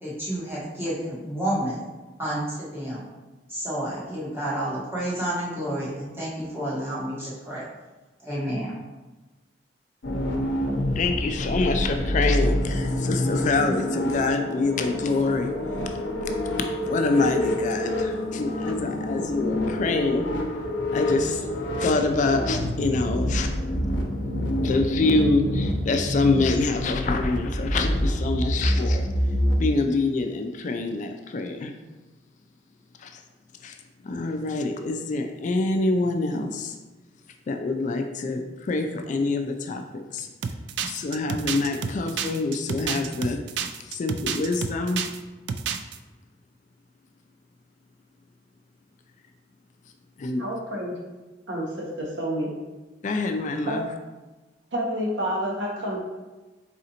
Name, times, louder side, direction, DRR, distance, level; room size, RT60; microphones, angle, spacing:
voice 1, 0.0-1.8 2.2-3.0 3.5-7.6 8.2-8.8, right 1 dB, 15° right, -9 dB, 1.5 m, -30 dB
sound 1, 10.0-29.5, left 1 dB, 85° left, 0.6 m, -27 dB
voice 2, 11.0-15.5 16.8-20.3 20.9-21.5 21.8-23.5 24.6-29.1 29.6-31.7 33.0-33.2 33.6-33.8 34.0-36.8 37.5-40.3 40.8-43.4 43.9-45.0 50.2-50.4 53.0-53.9, left 3 dB, 45° left, 6 dB, 0.3 m, -26 dB
sound 2, 40.4-45.2 45.5-46.0, right 7 dB, 70° right, 0.3 m, -30 dB
voice 3, 50.4-51.0 51.5-52.5 53.7-53.8 54.7-56.0, equal, 90° right, -1 dB, 1.0 m, -29 dB
4.1 x 3.7 x 2.8 m, 1.2 s
head